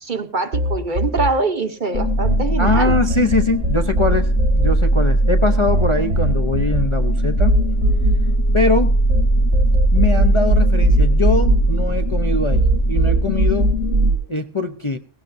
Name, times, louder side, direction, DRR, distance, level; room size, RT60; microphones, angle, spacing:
voice 1, 0.0-2.9, right 3 dB, 45° right, 9 dB, 1.0 m, -23 dB
sound 1, 0.5-2.4 2.7-9.2 9.5-12.2 12.5-14.2, right 1 dB, 75° right, 2.2 m, -20 dB
sound 2, 1.9-14.1, right 1 dB, 65° left, 1.9 m, -19 dB
voice 2, 2.6-7.6 8.5-8.9 9.9-13.7 14.3-15.0, left 3 dB, 30° left, 7 dB, 0.6 m, -22 dB
18.0 x 17.0 x 2.6 m, 0.40 s
omnidirectional pair, 1.3 m